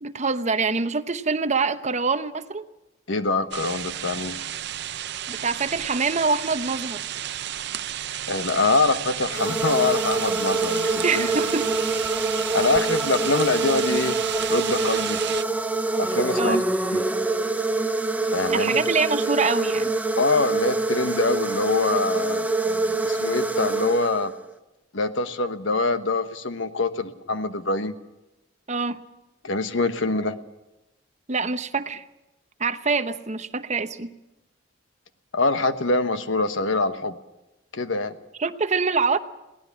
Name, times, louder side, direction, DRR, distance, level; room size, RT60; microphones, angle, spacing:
voice 1, 0.0-2.6 5.3-7.0 11.0-11.6 16.3-16.6 18.5-19.9 28.7-29.0 31.3-32.0 32.6-34.1 38.4-39.2, right 4 dB, 35° right, 11 dB, 0.9 m, -25 dB
voice 2, 3.1-4.4 8.3-11.3 12.5-14.2 14.5-15.2 16.0-16.6 16.9-17.0 18.2-18.8 20.2-24.3 24.9-27.9 29.4-30.4 35.3-37.2 37.7-38.2, left 3 dB, 80° left, 11 dB, 1.2 m, -24 dB
sound 1, 3.5-15.4, right 11 dB, 60° right, 0.6 m, -32 dB
sound 2, 9.3-24.5, right 3 dB, 10° right, 0.6 m, -25 dB
22.5 x 17.5 x 7.2 m, 0.97 s
head